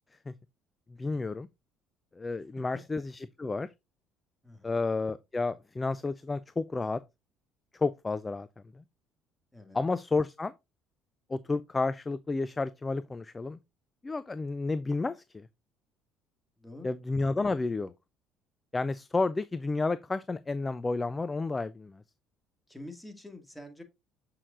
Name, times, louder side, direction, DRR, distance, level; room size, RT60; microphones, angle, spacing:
voice 1, 1.0-1.5 2.2-3.0 3.4-3.7 4.6-7.0 7.8-8.5 9.7-10.5 11.3-13.6 14.0-15.5 16.8-17.9 18.7-22.0, left 3 dB, 25° left, 0.4 m, -31 dB
voice 2, 4.4-4.8 9.5-9.8 16.6-16.9 22.7-23.8, left 1 dB, 5° left, 2.1 m, -46 dB
7.6 x 6.4 x 2.5 m
hypercardioid pair, 60°, 0 cm